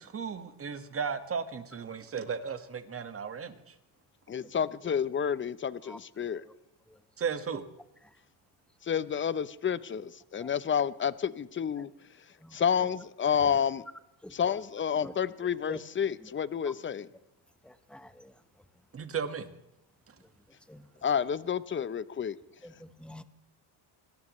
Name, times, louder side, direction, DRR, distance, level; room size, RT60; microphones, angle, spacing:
voice 1, 0.0-3.7 7.2-7.6 18.9-19.5, right 6 dB, 30° right, 9 dB, 1.6 m, -35 dB
voice 2, 4.3-6.4 8.8-11.9 12.5-13.8 14.3-17.1 21.0-22.4, left 8 dB, 25° left, 17 dB, 0.7 m, -30 dB
voice 3, 17.6-18.3 20.7-20.8 22.6-23.2, left 1 dB, ahead, 11 dB, 1.1 m, -45 dB
25.5 x 17.5 x 3.2 m, 0.86 s
cardioid pair, 110°, 48 cm